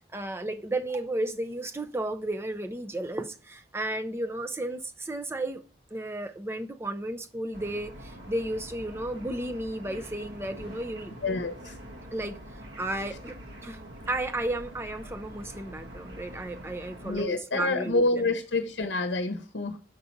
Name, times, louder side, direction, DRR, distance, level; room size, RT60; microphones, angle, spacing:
voice 1, 0.0-5.6 5.9-11.1 12.1-13.4 13.6-13.8 14.1-18.2, right 1 dB, 15° right, 0.6 m, -33 dB
sound 1, 7.5-17.2, equal, 75° right, 1.8 m, -45 dB
voice 2, 11.2-11.8 13.0-13.2 17.0-19.8, left 2 dB, 80° left, 0.8 m, -28 dB
6.5 x 4.2 x 4.5 m
head